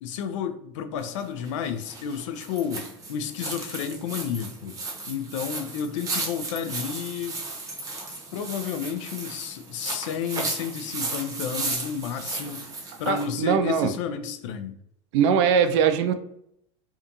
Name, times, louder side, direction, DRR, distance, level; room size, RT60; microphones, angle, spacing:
voice 1, 0.0-4.8 5.1-7.4 8.3-12.6 13.0-14.7, left 7 dB, 70° left, 9 dB, 0.4 m, -31 dB
sound 1, 1.0-13.3, right 3 dB, 20° right, 0.7 m, -35 dB
voice 2, 13.1-13.9 15.1-16.1, right 7 dB, 65° right, 9 dB, 0.4 m, -21 dB
2.7 x 2.3 x 2.5 m, 0.74 s
hypercardioid pair, 115°, 17 cm